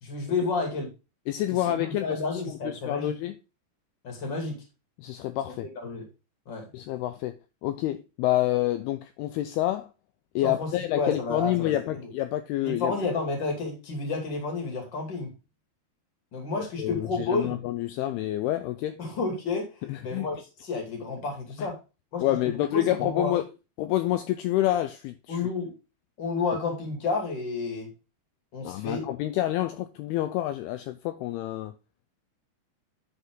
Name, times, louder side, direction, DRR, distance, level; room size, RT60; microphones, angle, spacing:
voice 1, 0.0-0.9 1.5-3.1 4.0-4.6 5.8-6.0 6.5-6.7 10.4-12.1 12.6-15.3 16.3-17.6 19.0-19.7 20.0-20.4 20.6-21.8 22.1-23.3 25.3-25.7 26.2-27.9 28.5-29.0, left 3 dB, 35° left, 2.3 m, -31 dB
voice 2, 1.3-2.2 2.5-3.4 5.0-5.7 6.7-7.3 7.6-9.9 10.4-12.9 16.6-19.0 19.8-20.3 21.6-21.7 22.2-23.4 23.8-25.4 28.6-31.7, left 14 dB, 85° left, 2.2 m, -28 dB
11.0 x 4.3 x 3.8 m
omnidirectional pair, 5.0 m